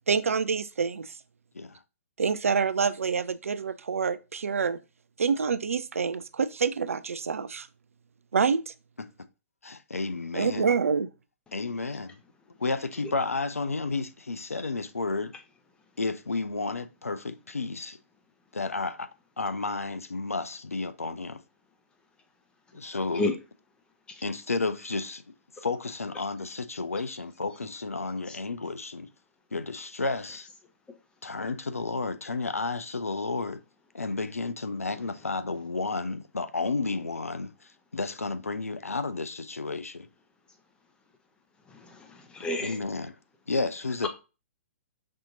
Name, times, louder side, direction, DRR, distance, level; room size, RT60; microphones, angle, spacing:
voice 1, 0.1-1.1 2.2-4.8 5.2-7.7 8.3-8.7 10.3-11.1, right 5 dB, 70° right, 0.3 m, -27 dB
voice 2, 9.6-10.7 11.5-12.2 12.6-15.3 16.0-18.0 18.5-19.1 19.4-21.4 22.7-23.3 24.2-25.2 25.6-29.1 29.5-30.5 31.2-33.6 33.9-37.5 37.9-40.1 42.6-43.2 43.5-44.1, left 3 dB, 85° left, 0.4 m, -32 dB
voice 3, 41.8-42.8, left 2 dB, 10° left, 0.7 m, -30 dB
5.4 x 2.8 x 2.6 m
figure-of-eight pair, 120°, 8 cm